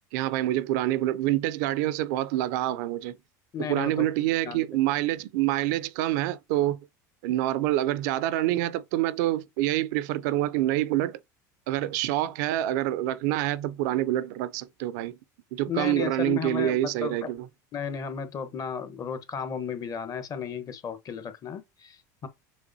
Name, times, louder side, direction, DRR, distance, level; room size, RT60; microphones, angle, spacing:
voice 1, 0.1-3.2 3.7-6.8 7.2-11.2 11.7-15.2 15.5-17.5, right 14 dB, 75° right, 0.4 m, -26 dB
voice 2, 3.5-4.1 4.5-4.6 15.7-17.3 17.7-22.3, left 7 dB, 40° left, 0.9 m, -34 dB
6.3 x 2.9 x 2.7 m
hypercardioid pair, 90°, 10 cm